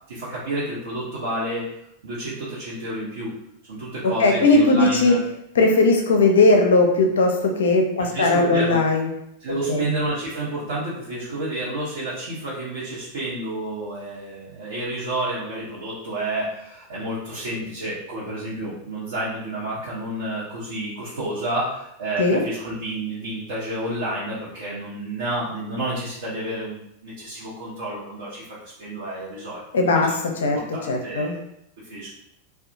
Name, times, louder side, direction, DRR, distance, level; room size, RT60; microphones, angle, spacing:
voice 1, 0.1-1.8 2.0-3.4 3.7-5.2 8.0-8.8 9.4-30.0 30.5-31.4 31.8-32.1, right 1 dB, 60° right, -9 dB, 0.7 m, -30 dB
voice 2, 4.0-5.1 5.6-9.1 9.7-9.9 22.2-22.4 29.7-30.6 30.9-31.4, left 2 dB, 65° left, 2 dB, 0.5 m, -18 dB
2.7 x 2.2 x 2.6 m, 0.78 s
figure-of-eight pair, 90°, 0 cm